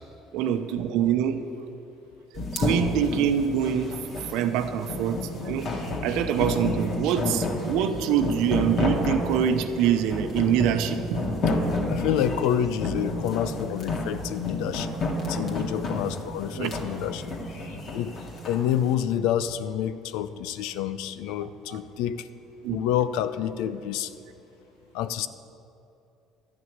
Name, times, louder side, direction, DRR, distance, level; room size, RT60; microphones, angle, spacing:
voice 1, 0.3-1.4 2.5-3.9 4.3-5.2 5.4-5.7 6.0-11.2 16.6-16.7 21.7-21.8 22.6-22.8, right 9 dB, 80° right, 8 dB, 0.8 m, -25 dB
sound 1, 2.4-18.6, left 2 dB, 55° left, 2.2 m, -30 dB
voice 2, 11.9-15.0 15.3-17.3 17.7-18.2 18.5-22.3 22.7-24.1 24.9-25.3, left 10 dB, 85° left, 13 dB, 0.5 m, -28 dB
12.5 x 6.2 x 9.5 m, 2.8 s
cardioid pair, 105°, 0 cm